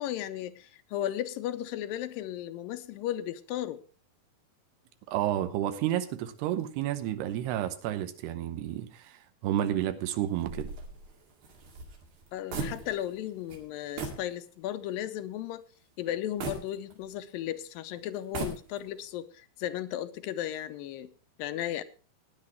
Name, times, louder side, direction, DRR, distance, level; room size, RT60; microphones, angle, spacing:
voice 1, 0.0-3.8 12.3-15.6 16.0-21.1 21.4-21.8, left 12 dB, 75° left, 12 dB, 2.2 m, -35 dB
voice 2, 5.1-10.7, right 12 dB, 90° right, 9 dB, 3.0 m, -31 dB
sound 1, 10.4-13.2 13.5-13.6 14.0-14.3 14.8-14.9 16.4-17.4 18.1-19.0, right 3 dB, 70° right, 4.0 m, -38 dB
19.0 x 10.0 x 3.1 m, 0.36 s
omnidirectional pair, 4.6 m